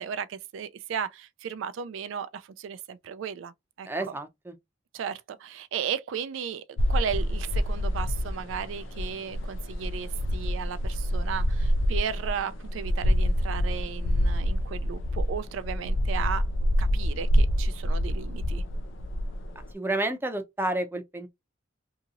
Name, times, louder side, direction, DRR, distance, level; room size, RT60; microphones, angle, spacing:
voice 1, 0.0-3.5 3.8-3.9 4.9-16.5 16.8-18.6, right 7 dB, 80° right, 0.3 m, -35 dB
voice 2, 3.9-4.5 19.7-21.3, right 2 dB, 10° right, 0.5 m, -30 dB
sound 1, 6.8-19.7, equal, 75° left, 0.4 m, -27 dB
2.8 x 2.8 x 2.4 m
head